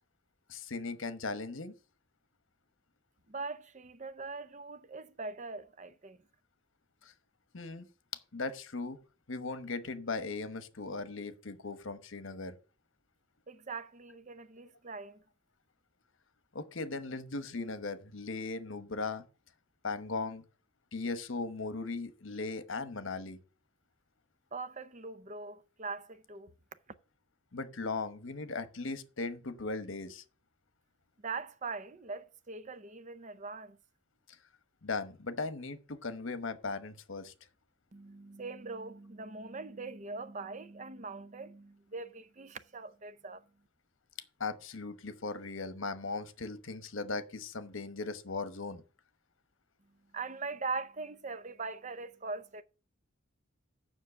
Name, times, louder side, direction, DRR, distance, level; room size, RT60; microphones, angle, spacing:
voice 1, 0.5-1.7 7.5-7.9 8.3-9.0 9.3-12.5 16.5-19.2 19.8-20.4 20.9-23.4 27.5-30.2 34.8-37.3 44.4-48.8, left 3 dB, 65° left, 1.0 m, -38 dB
voice 2, 3.3-6.2 13.5-15.2 24.5-26.5 31.2-33.8 37.9-43.4 50.1-52.6, right 4 dB, 35° right, 0.6 m, -41 dB
7.4 x 6.0 x 6.8 m
head